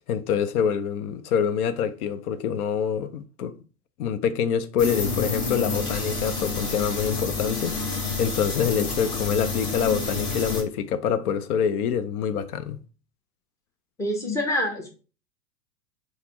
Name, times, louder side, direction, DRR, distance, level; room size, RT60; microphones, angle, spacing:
voice 1, 0.1-3.5 4.0-7.8 8.2-12.8, left 7 dB, 65° left, 0.5 m, -26 dB
sound 1, 4.8-10.6, left 4 dB, 25° left, 0.9 m, -29 dB
voice 2, 14.0-14.9, left 1 dB, 5° left, 0.5 m, -26 dB
4.0 x 2.0 x 4.4 m
hypercardioid pair, 110°, 49 cm